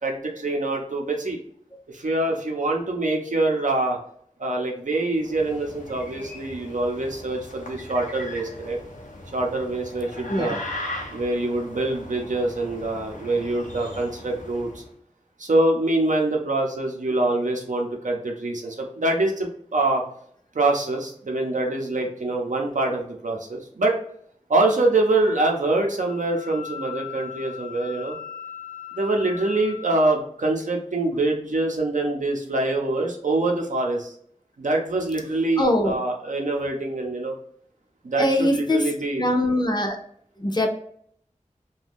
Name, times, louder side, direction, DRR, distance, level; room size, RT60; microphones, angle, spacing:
voice 1, 0.0-1.4 1.9-4.0 4.4-8.8 9.3-10.6 11.1-14.8 15.4-20.0 20.5-23.9 24.5-28.2 28.9-34.1 34.6-37.3 38.0-39.3, right 2 dB, 80° right, 1 dB, 0.6 m, -24 dB
sound 1, 5.1-14.9, left 1 dB, 85° left, 0.6 m, -39 dB
Wind instrument woodwind instrument, 26.1-30.1, left 9 dB, 65° left, 0.9 m, -39 dB
voice 2, 35.6-36.0 38.2-38.9 39.2-40.0 40.4-40.7, left 1 dB, 35° left, 3 dB, 0.5 m, -22 dB
2.5 x 2.2 x 3.3 m, 0.65 s
wide cardioid pair, 55°, 13 cm